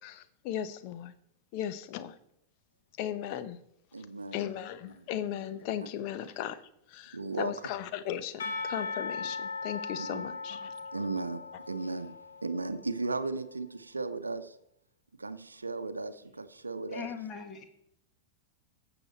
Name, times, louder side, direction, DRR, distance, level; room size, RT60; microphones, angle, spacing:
voice 1, 0.0-1.1 1.5-2.2 3.0-3.6 4.0-4.1 4.3-6.6 6.9-10.9, left 10 dB, 45° left, 12 dB, 0.8 m, -37 dB
voice 2, 3.9-4.4 5.0-5.1 7.1-7.5 10.0-10.2 10.9-12.2 12.4-14.6 15.2-17.1, right 3 dB, 80° right, 12 dB, 0.7 m, -36 dB
Percussion / Church bell, 8.4-13.2, left 3 dB, 65° left, 1.4 m, -39 dB
voice 3, 16.9-17.6, left 7 dB, 30° left, 6 dB, 1.6 m, -39 dB
14.5 x 7.1 x 4.3 m, 0.76 s
figure-of-eight pair, 90°, 0 cm